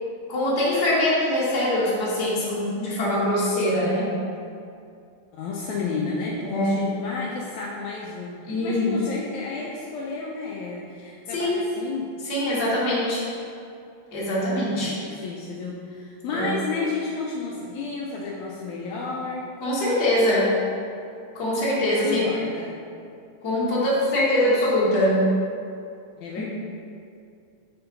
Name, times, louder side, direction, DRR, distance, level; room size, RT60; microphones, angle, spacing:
voice 1, 0.3-4.1 6.5-6.8 8.5-8.9 11.3-11.6 12.2-13.2 14.1-14.9 16.3-16.5 19.6-20.5 21.3-22.3 23.4-25.3 26.4-26.5, left 1 dB, 40° left, -7 dB, 1.6 m, -23 dB
voice 2, 5.3-12.1 14.7-19.5 21.8-22.7 26.2-26.5, left 4 dB, 85° left, -3 dB, 1.6 m, -32 dB
6.7 x 4.4 x 5.3 m, 2.5 s
omnidirectional pair, 4.1 m